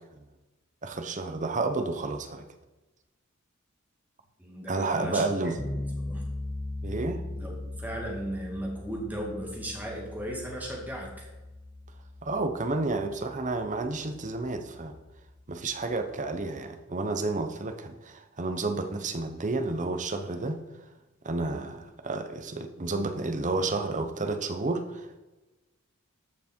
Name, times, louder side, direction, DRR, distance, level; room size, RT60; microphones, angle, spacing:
voice 1, 0.8-2.4 4.7-5.6 6.8-7.2 12.2-14.9 15.5-20.6 21.2-25.2, right 3 dB, 35° right, 7 dB, 0.9 m, -31 dB
voice 2, 4.4-5.2 5.6-6.2 7.3-11.3, right 1 dB, 10° right, -2 dB, 2.5 m, -36 dB
sound 1, 5.6-16.5, left 2 dB, 20° left, 0.8 m, -40 dB
13.5 x 6.1 x 4.5 m, 1.1 s
head